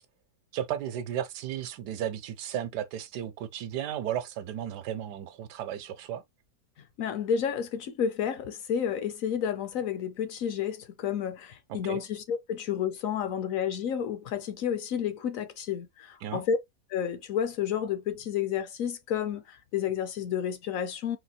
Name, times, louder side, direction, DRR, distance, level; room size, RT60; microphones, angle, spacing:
voice 1, 0.5-6.2 11.7-12.0 16.2-16.4, right 10 dB, 80° right, 1.3 m, -34 dB
voice 2, 7.0-16.6 16.9-21.2, left 8 dB, 65° left, 0.9 m, -31 dB
4.3 x 2.4 x 4.1 m
omnidirectional pair, 1.7 m